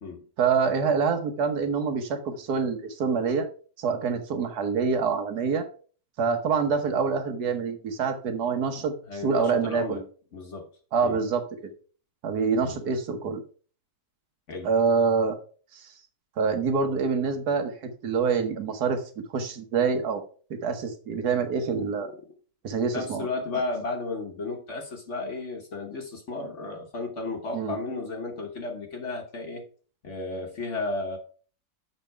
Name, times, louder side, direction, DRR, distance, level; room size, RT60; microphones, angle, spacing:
voice 1, 0.4-3.5 3.8-5.7 6.2-8.9 9.2-10.0 10.9-11.7 12.2-13.4 14.6-15.4 15.7-15.9 16.4-17.7 18.0-19.0 19.3-20.2 20.5-22.1 22.6-23.3 27.5-27.8, right 5 dB, 80° right, 1.7 m, -26 dB
voice 2, 9.1-10.0 10.3-10.7 11.0-11.2 12.6-12.8 14.5-14.7 21.8-22.3 22.9-29.7 30.0-31.2, left 3 dB, 50° left, 1.3 m, -33 dB
7.3 x 5.5 x 4.5 m
omnidirectional pair, 1.7 m